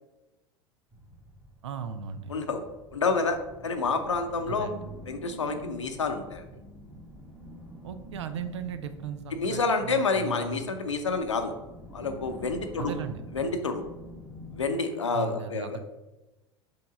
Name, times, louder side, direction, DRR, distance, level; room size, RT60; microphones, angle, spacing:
sound 1, 0.9-14.7, equal, 10° right, 1.3 m, -47 dB
voice 1, 1.6-2.3 4.5-4.8 7.8-10.6 12.8-13.2 15.1-15.8, right 8 dB, 75° right, 11 dB, 0.6 m, -37 dB
voice 2, 2.3-2.6 2.9-3.4 3.6-4.7 5.1-6.5 9.3-11.5 11.9-12.9 13.3-13.8 14.5-15.8, left 4 dB, 85° left, 6 dB, 0.7 m, -28 dB
5.7 x 3.5 x 4.9 m, 1.0 s
hypercardioid pair, 80°, 15 cm